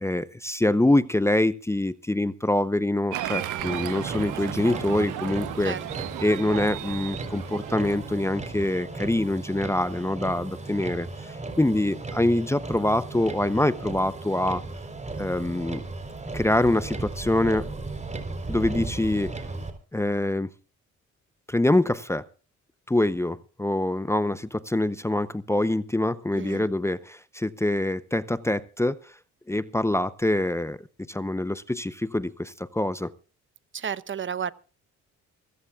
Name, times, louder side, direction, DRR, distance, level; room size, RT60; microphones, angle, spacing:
voice 1, 0.0-5.8 6.2-14.6 15.2-15.8 16.3-17.7 18.5-19.3 19.9-20.5 21.5-22.3 22.9-29.1 29.5-33.1, left 1 dB, 10° left, 0.7 m, -25 dB
Applause, 3.1-8.2, right 12 dB, 85° right, 1.5 m, -34 dB
Motor vehicle (road), 3.6-19.7, right 3 dB, 25° right, 3.9 m, -36 dB
voice 2, 5.6-6.1 26.3-26.7 33.7-34.5, right 8 dB, 40° right, 0.9 m, -32 dB
24.5 x 15.0 x 2.4 m
cardioid pair, 90°, 30 cm